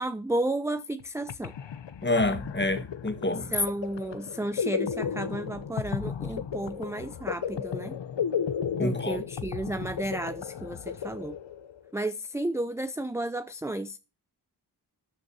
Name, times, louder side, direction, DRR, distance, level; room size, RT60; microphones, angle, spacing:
voice 1, 0.0-1.5 3.5-8.0 8.8-11.4 11.9-14.0, right 1 dB, 5° right, 0.5 m, -32 dB
sound 1, 1.0-1.1 1.3-11.9, left 7 dB, 85° left, 1.0 m, -34 dB
voice 2, 2.0-3.5 8.8-9.2, left 2 dB, 25° left, 2.0 m, -27 dB
13.5 x 9.7 x 4.3 m
wide cardioid pair, 135°, 43 cm